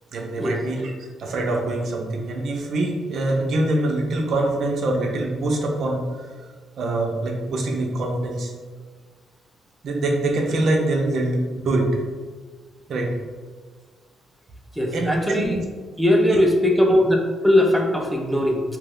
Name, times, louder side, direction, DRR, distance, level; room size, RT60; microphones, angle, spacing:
voice 1, 0.1-6.3 6.8-8.5 9.8-12.0 12.9-13.1 14.9-15.6 16.3-16.4 16.9-17.0, right 2 dB, 65° right, 1 dB, 0.5 m, -24 dB
voice 2, 14.8-15.6 16.0-17.2 17.4-18.6, left 1 dB, ahead, 0 dB, 0.4 m, -19 dB
2.7 x 2.1 x 3.7 m, 1.5 s
cardioid pair, 90°, 0 cm